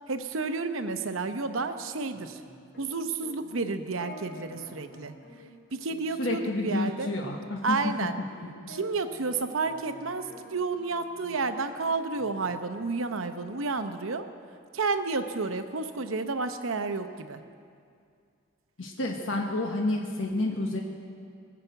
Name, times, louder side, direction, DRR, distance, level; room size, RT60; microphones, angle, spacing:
voice 1, 0.1-2.4 2.8-5.1 5.7-7.1 7.6-8.2 8.7-14.3 14.7-17.4, right 3 dB, 80° right, 8 dB, 0.8 m, -31 dB
sound 1, 0.9-11.4 11.7-13.0, left 2 dB, 50° left, 2.6 m, -50 dB
voice 2, 6.2-7.8 18.8-20.8, left 2 dB, 70° left, 1 dB, 1.2 m, -29 dB
18.5 x 7.2 x 7.9 m, 2.3 s
head